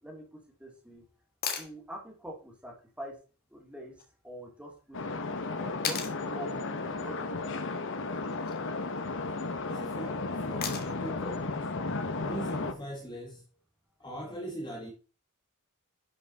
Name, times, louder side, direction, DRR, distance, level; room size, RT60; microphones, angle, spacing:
voice 1, 0.0-1.0 1.6-3.2 3.5-3.9 4.2-5.2 5.6-7.6, right 1 dB, 5° right, 3.1 m, -45 dB
sound 1, 1.4-1.7 4.0-4.1 5.8-6.2 8.2-8.6 10.6-11.1 13.2-13.3, left 7 dB, 45° left, 1.9 m, -35 dB
sound 2, 4.9-12.7, left 3 dB, 60° left, 1.2 m, -34 dB
voice 2, 9.3-11.7 12.2-13.5 14.0-14.9, equal, 20° left, 1.8 m, -41 dB
11.5 x 6.0 x 4.2 m
head